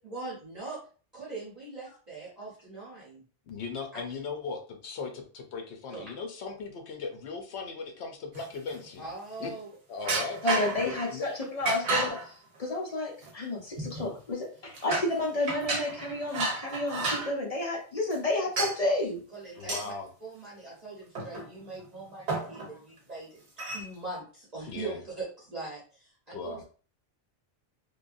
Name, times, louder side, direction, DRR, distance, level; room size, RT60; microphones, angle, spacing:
voice 1, 0.0-0.8 1.1-3.2 5.9-6.1 9.0-9.7 10.0-10.1 19.3-19.9 20.2-26.6, right 3 dB, 40° right, -7 dB, 0.9 m, -41 dB
voice 2, 3.5-9.1 9.4-9.5 9.9-10.4 10.8-11.3 19.6-20.1 24.7-25.0 26.3-26.6, left 4 dB, 75° left, 4 dB, 0.9 m, -38 dB
sound 1, 8.3-9.0 10.0-11.1 11.6-12.3 13.2-13.3 13.8-14.2 14.7-15.2 15.5-17.3 18.1-18.2 18.6-18.8 19.6-19.9 21.1-21.7 22.0-22.1 22.3-22.7 23.6-23.9, right 3 dB, 70° right, 1.2 m, -32 dB
voice 3, 10.4-12.2 12.6-19.2, left 2 dB, 40° left, -1 dB, 0.6 m, -30 dB
3.2 x 2.2 x 2.5 m, 0.39 s
omnidirectional pair, 1.2 m